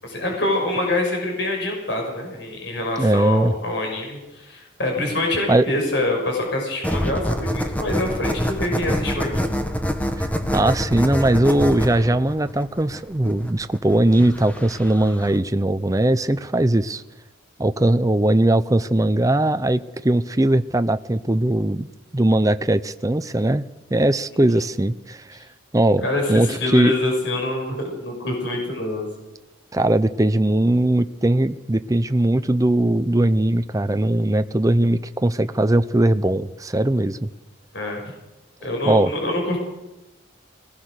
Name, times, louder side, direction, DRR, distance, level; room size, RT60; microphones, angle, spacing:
voice 1, 0.0-9.7 26.0-29.3 37.7-38.1 38.6-39.6, left 1 dB, 60° left, 1 dB, 6.2 m, -25 dB
voice 2, 3.0-3.5 5.5-5.6 10.2-17.0 17.6-23.6 23.9-25.4 25.7-26.0 26.3-26.9 29.7-37.3 38.9-39.1, right 1 dB, 15° right, 11 dB, 0.6 m, -19 dB
sound 1, 6.8-15.4, equal, 10° left, 1.5 m, -26 dB
22.5 x 19.0 x 6.5 m, 0.98 s
head